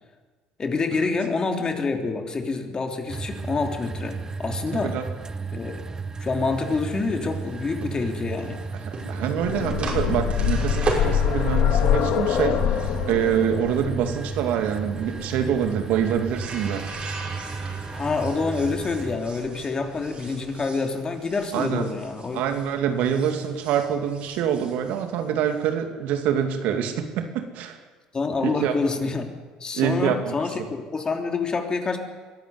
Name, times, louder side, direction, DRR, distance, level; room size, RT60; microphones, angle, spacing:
voice 1, 0.6-5.0 5.5-5.8 6.2-8.6 17.9-22.5 28.1-29.3 29.6-32.0, left 4 dB, 30° left, 4 dB, 3.3 m, -27 dB
sound 1, 3.1-19.2, right 4 dB, 25° right, 0.9 m, -34 dB
sound 2, 6.5-22.7 23.0-25.6, right 3 dB, 45° right, 5.9 m, -38 dB
voice 2, 8.8-16.8 21.5-21.8 22.3-27.8 28.4-28.7 29.7-30.3, right 8 dB, 70° right, 6 dB, 2.4 m, -25 dB
sound 3, 9.2-17.0 18.1-18.2 18.6-18.7, left 10 dB, 65° left, 1.9 m, -25 dB
22.5 x 13.0 x 9.5 m, 1.4 s
supercardioid pair, 80°, 3 cm